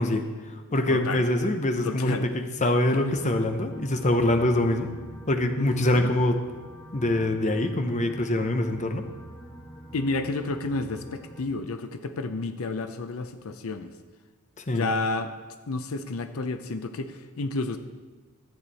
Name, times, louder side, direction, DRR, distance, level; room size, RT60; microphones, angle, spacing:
voice 1, 0.0-4.9 5.3-6.4 6.9-9.1 14.6-14.9, left 1 dB, 35° left, 6 dB, 0.7 m, -24 dB
voice 2, 0.9-1.2 1.8-2.3 5.6-6.1 9.9-13.9 14.7-15.3 15.7-17.8, left 3 dB, 70° left, 9 dB, 0.6 m, -30 dB
sound 1, 3.0-11.4, equal, 15° left, 1.4 m, -45 dB
13.5 x 8.0 x 4.2 m, 1.3 s
head